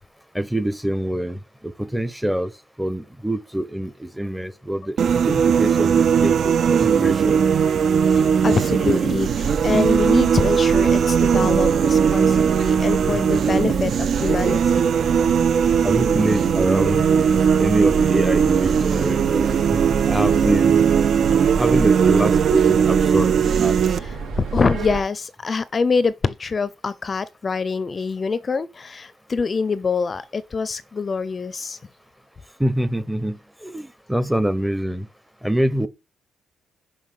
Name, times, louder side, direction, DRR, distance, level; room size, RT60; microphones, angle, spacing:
voice 1, 0.3-2.5 2.8-7.4 13.1-13.2 15.8-17.3 17.6-19.5 20.1-20.8 21.6-23.3 23.6-23.8 32.6-35.1 35.4-35.9, right 1 dB, 5° right, 0.8 m, -25 dB
sound 1, 5.0-24.0, right 7 dB, 55° right, 0.4 m, -18 dB
voice 2, 8.1-14.9 24.0-31.8, left 4 dB, 35° left, 0.5 m, -25 dB
sound 2, 9.2-25.0, right 4 dB, 80° right, 3.2 m, -30 dB
5.6 x 5.4 x 6.4 m
cardioid pair, 90°, 0 cm